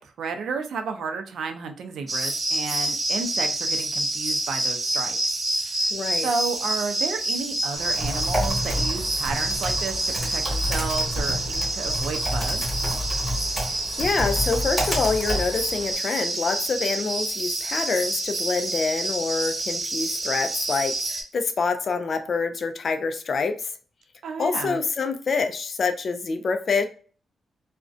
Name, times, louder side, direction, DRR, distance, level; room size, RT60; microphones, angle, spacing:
voice 1, 0.0-5.2 6.2-12.6 24.2-24.8, right 5 dB, 75° right, 6 dB, 0.4 m, -32 dB
sound 1, 2.1-21.2, right 2 dB, 30° right, 0.7 m, -28 dB
voice 2, 5.9-6.3 13.6-13.7 14.0-23.7 24.4-26.8, left 4 dB, 45° left, 8 dB, 0.4 m, -26 dB
Typing, 7.7-15.9, equal, 5° right, 1.2 m, -29 dB
2.5 x 2.1 x 2.4 m, 0.41 s
wide cardioid pair, 135°, 0 cm